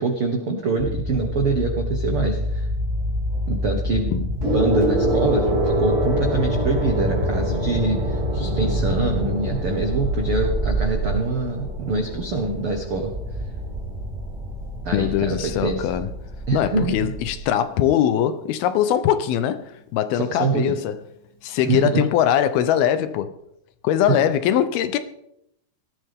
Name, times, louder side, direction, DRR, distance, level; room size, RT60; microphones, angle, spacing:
voice 1, 0.0-2.7 3.5-13.1 14.8-15.9 16.5-17.0 20.1-20.8 21.7-22.0 24.1-24.2, right 3 dB, 90° right, 1.2 m, -25 dB
sound 1, 0.8-17.4, left 1 dB, 15° right, 2.8 m, -27 dB
Gong, 4.4-14.2 15.1-15.4, right 1 dB, 40° right, 4.8 m, -28 dB
voice 2, 14.9-16.1 16.5-21.0 21.4-23.3 23.8-25.0, left 10 dB, 75° left, 2.5 m, -21 dB
18.5 x 13.5 x 3.6 m
omnidirectional pair, 4.7 m